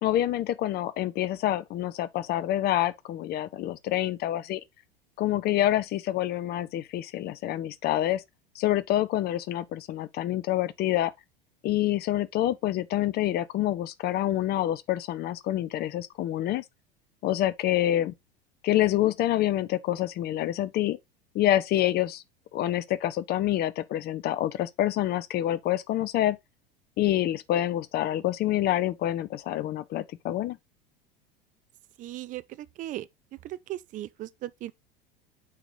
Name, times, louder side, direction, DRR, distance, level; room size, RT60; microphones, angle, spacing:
voice 1, 0.0-4.6 5.2-8.2 8.5-11.1 11.6-16.6 17.2-18.1 18.6-21.0 21.3-22.2 22.5-26.4 27.0-30.6, left 13 dB, 35° left, 0.6 m, -27 dB
voice 2, 32.0-33.1 33.4-34.7, right 14 dB, 25° right, 0.4 m, -37 dB
8.3 x 3.0 x 3.8 m
figure-of-eight pair, 75°, 29 cm